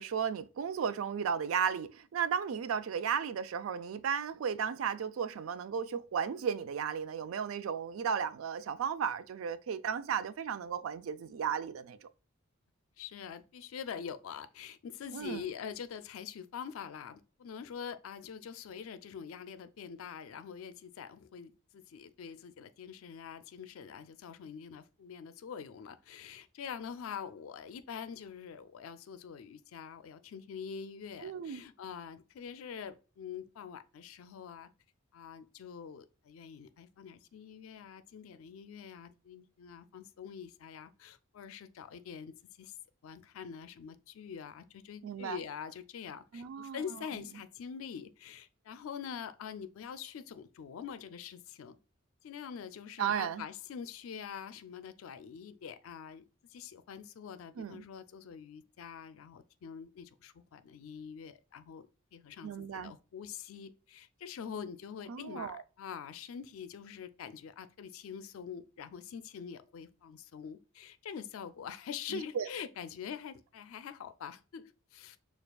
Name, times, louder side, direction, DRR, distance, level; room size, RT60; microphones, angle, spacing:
voice 1, 0.0-12.1 15.1-15.4 31.2-31.6 45.0-45.4 46.3-46.8 53.0-53.4 57.6-57.8 62.4-62.9 65.1-65.6 72.1-72.5, right 7 dB, 80° right, 0.3 m, -34 dB
voice 2, 13.0-34.7 35.1-42.7 43.0-51.8 52.2-56.2 56.5-75.2, left 7 dB, 80° left, 0.4 m, -45 dB
6.6 x 2.4 x 2.3 m
head